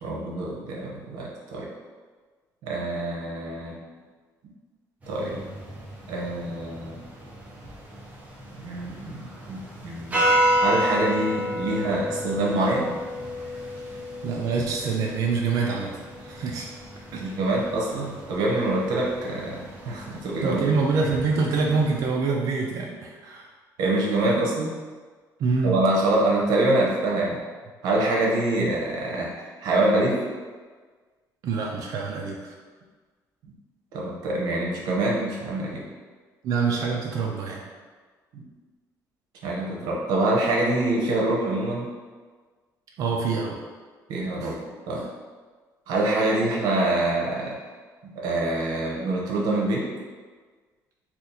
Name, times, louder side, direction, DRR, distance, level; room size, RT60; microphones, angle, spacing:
voice 1, 0.0-1.7 2.6-3.8 5.1-5.4 6.1-7.0 8.6-10.2 10.6-12.9 17.2-20.7 23.8-24.8 25.6-27.4 27.8-30.2 33.9-35.8 38.3-38.4 39.4-41.9 44.1-44.6 44.9-45.0 45.9-47.5 48.0-49.8, right 2 dB, 90° right, -3 dB, 0.8 m, -25 dB
sound 1, 5.0-22.1, equal, 20° right, 0.7 m, -31 dB
voice 2, 14.2-15.9 16.2-16.7 17.1-17.2 20.4-23.5 25.4-25.8 28.6-28.7 31.4-32.5 36.4-37.6 43.0-43.6 44.4-44.5, right 4 dB, 60° right, -1 dB, 0.4 m, -25 dB
2.8 x 2.4 x 3.8 m, 1.5 s
cardioid pair, 150°, 7 cm